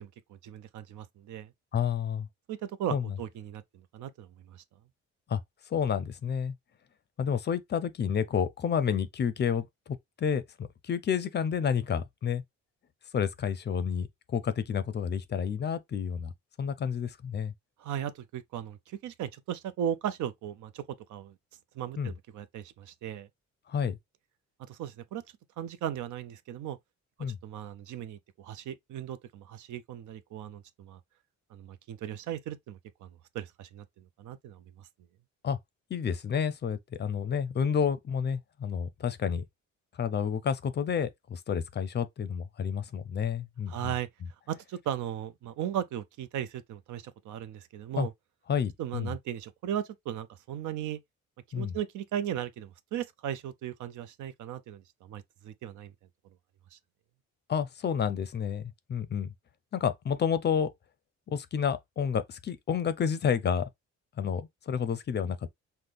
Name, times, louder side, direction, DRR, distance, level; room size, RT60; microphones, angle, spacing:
voice 1, 0.0-1.5 2.5-3.6 3.9-4.6 17.8-20.8 21.1-21.3 21.8-23.3 24.7-25.2 25.6-26.8 27.4-31.0 31.5-33.1 33.3-34.6 43.7-44.1 44.5-48.1 48.8-51.0 51.6-55.9 56.7-56.8, right 10 dB, 75° right, 0.6 m, -37 dB
voice 2, 1.7-2.3 2.9-3.0 5.3-5.4 5.7-6.5 7.2-12.4 13.1-16.3 16.6-17.5 22.0-22.1 23.7-24.0 27.2-27.4 35.4-35.6 35.9-39.4 40.0-43.9 47.9-48.1 48.5-49.1 51.5-51.8 57.5-59.3 59.7-60.7 61.3-63.7 64.2-65.5, left 7 dB, 35° left, 0.5 m, -30 dB
5.8 x 2.1 x 3.3 m
cardioid pair, 155°, 30 cm